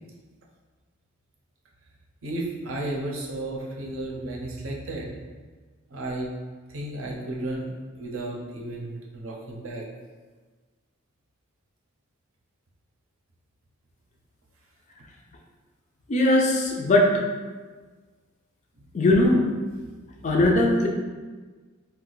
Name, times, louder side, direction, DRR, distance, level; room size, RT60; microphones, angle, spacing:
voice 1, 2.2-5.1 5.9-6.3 6.7-9.8 19.7-19.8 20.2-20.3, right 1 dB, 70° right, -2 dB, 0.6 m, -33 dB
voice 2, 16.1-17.2 18.9-19.5 20.2-20.9, left 1 dB, 35° left, 0 dB, 0.3 m, -20 dB
2.4 x 2.2 x 3.8 m, 1.4 s
head